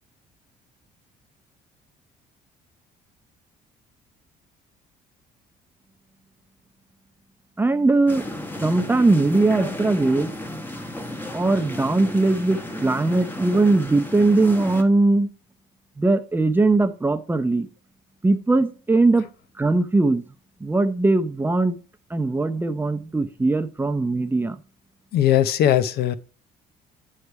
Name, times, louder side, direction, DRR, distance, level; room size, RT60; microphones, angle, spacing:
voice 1, 7.6-8.2 8.6-10.3 11.3-15.3 16.0-17.7 18.2-19.3 19.6-20.2 20.6-21.8 22.1-24.6, right 2 dB, 10° right, 0.6 m, -20 dB
sound 1, 8.1-14.8, left 1 dB, 10° left, 1.0 m, -33 dB
voice 2, 25.1-26.2, left 11 dB, 70° left, 0.6 m, -19 dB
9.6 x 3.3 x 4.6 m
cardioid pair, 110°, 17 cm